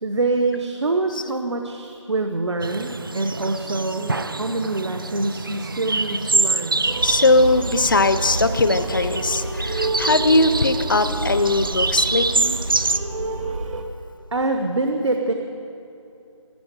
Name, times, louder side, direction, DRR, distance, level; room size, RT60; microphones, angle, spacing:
voice 1, 0.0-6.9 14.3-15.3, right 2 dB, 60° right, 5 dB, 0.9 m, -25 dB
sound 1, 2.6-13.0, right 3 dB, 45° right, 0.5 m, -26 dB
sound 2, 6.8-13.8, right 2 dB, 80° right, 2.1 m, -29 dB
voice 2, 7.0-12.5, left 2 dB, 40° left, 10 dB, 0.5 m, -20 dB
13.5 x 8.6 x 9.4 m, 2.8 s
figure-of-eight pair, 175°, 16 cm